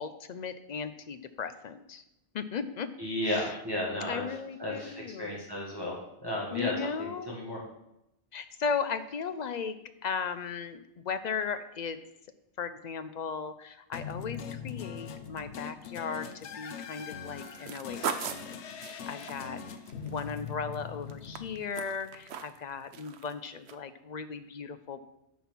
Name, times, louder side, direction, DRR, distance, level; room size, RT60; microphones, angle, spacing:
voice 1, 0.0-2.0 2.3-2.9 3.2-3.6 4.0-5.4 6.5-7.4 8.3-9.8 10.0-12.0 12.6-18.1 18.8-19.6 20.0-25.0, left 6 dB, 55° left, 11 dB, 0.5 m, -36 dB
voice 2, 3.0-4.2 4.6-6.7 7.0-7.6, left 1 dB, 20° right, -5 dB, 1.6 m, -34 dB
sound 1, 13.9-22.2, left 7 dB, 80° left, 1.0 m, -42 dB
sound 2, 17.4-20.8 21.1-22.6 22.9-23.3 23.7-23.8, right 7 dB, 70° right, 0.9 m, -39 dB
9.3 x 4.3 x 5.9 m, 0.86 s
omnidirectional pair, 1.2 m